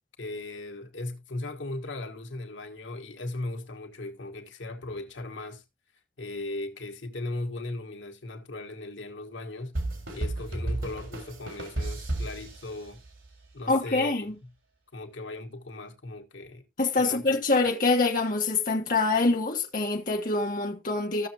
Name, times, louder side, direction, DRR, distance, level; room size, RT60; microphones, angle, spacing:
voice 1, 0.2-5.6 6.2-9.7 10.1-13.0 13.5-14.3 14.9-16.6 17.0-17.6, left 2 dB, 80° left, 1.5 m, -38 dB
sound 1, 9.7-13.3, right 1 dB, 90° right, 3.9 m, -33 dB
voice 2, 13.7-14.3 16.8-21.3, left 3 dB, 45° left, 1.3 m, -25 dB
14.5 x 6.7 x 2.8 m
head